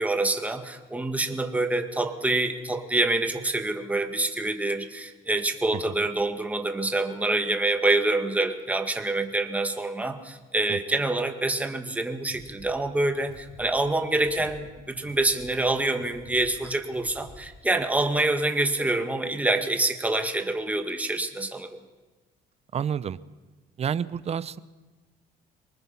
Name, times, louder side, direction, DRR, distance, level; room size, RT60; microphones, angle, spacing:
voice 1, 0.0-21.8, right 2 dB, 10° right, 5 dB, 1.9 m, -26 dB
sound 1, 12.2-17.6, left 3 dB, 70° left, 7.0 m, -50 dB
voice 2, 22.7-23.2 23.8-24.6, right 8 dB, 40° right, 16 dB, 0.8 m, -29 dB
24.0 x 20.0 x 5.8 m, 1.2 s
cardioid pair, 110°, 17 cm